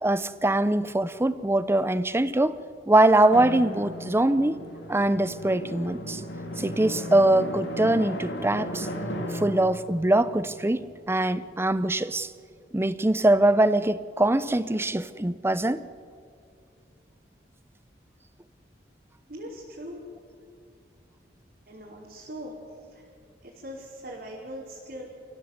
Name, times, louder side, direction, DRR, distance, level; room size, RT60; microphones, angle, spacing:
voice 1, 0.0-2.6 2.9-4.6 4.9-6.2 6.6-8.9 9.3-12.3 12.7-15.8, right 1 dB, 15° right, 0.6 m, -23 dB
Drum, 3.3-11.6, equal, 80° left, 2.8 m, -36 dB
voice 2, 19.3-20.0 21.7-22.5 22.9-23.0 23.4-25.0, equal, 60° right, 4.7 m, -40 dB
29.0 x 16.0 x 8.1 m
head